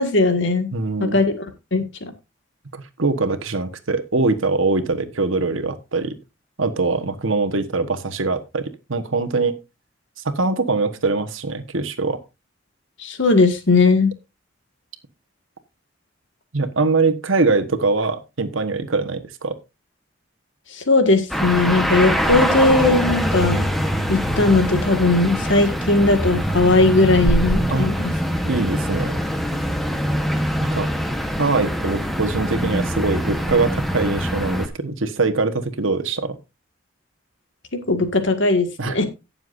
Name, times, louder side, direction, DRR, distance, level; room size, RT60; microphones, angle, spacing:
voice 1, 0.0-0.7 1.0-1.4 1.7-2.1 13.0-14.1 20.7-23.7 24.1-28.1 37.9-39.0, left 3 dB, 70° left, 7 dB, 1.8 m, -18 dB
voice 2, 0.7-1.2 2.7-6.1 6.6-9.5 10.2-12.2 16.5-19.6 27.7-27.9 28.4-29.2 30.6-30.9 31.4-36.4 38.8-39.0, right 3 dB, 90° right, 8 dB, 1.3 m, -22 dB
sound 1, 21.3-34.7, equal, ahead, 1.1 m, -23 dB
17.5 x 7.0 x 2.6 m, 0.26 s
head